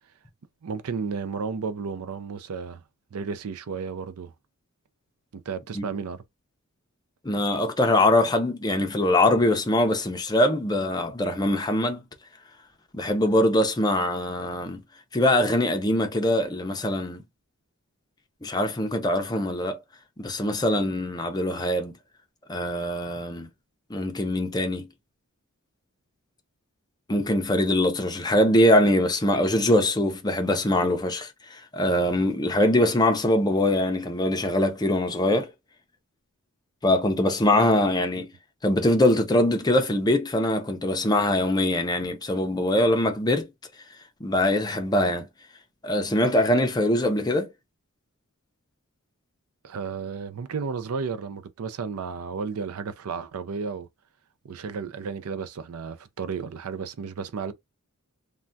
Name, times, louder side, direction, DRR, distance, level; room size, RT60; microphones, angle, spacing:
voice 1, 0.6-2.8 3.1-4.3 5.5-6.2 38.1-38.3 49.6-53.9 54.4-57.5, right 5 dB, 75° right, 0.4 m, -33 dB
voice 2, 7.2-12.0 12.9-14.8 15.1-17.2 18.4-19.8 20.2-21.9 22.5-23.5 23.9-24.9 27.1-35.5 36.8-38.3 38.6-43.5 44.2-45.3 45.8-47.5, left 1 dB, 20° left, 0.6 m, -23 dB
3.3 x 2.2 x 2.5 m
head